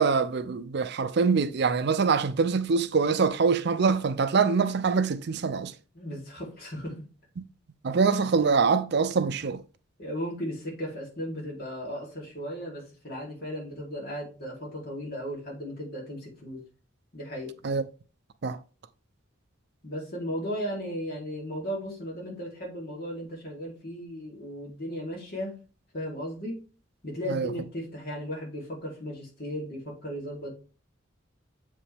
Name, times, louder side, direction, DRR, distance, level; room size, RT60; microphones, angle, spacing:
voice 1, 0.0-5.7 7.8-9.6 17.6-17.8 18.4-18.6 27.3-27.5, right 5 dB, 55° right, 0.5 m, -24 dB
voice 2, 5.9-7.0 10.0-16.6 17.1-17.5 19.8-25.6 25.9-26.6 27.0-30.5, equal, 50° left, 2.9 m, -36 dB
7.4 x 5.2 x 3.4 m
head